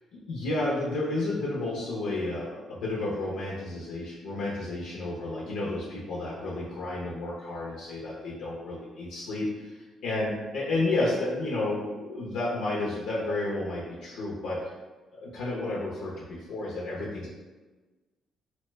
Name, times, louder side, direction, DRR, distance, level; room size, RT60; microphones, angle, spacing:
voice 1, 0.3-9.8 10.0-14.7 15.1-17.3, left 2 dB, 90° left, -4 dB, 0.5 m, -31 dB
2.8 x 2.1 x 3.2 m, 1.2 s
cardioid pair, 90°, 0 cm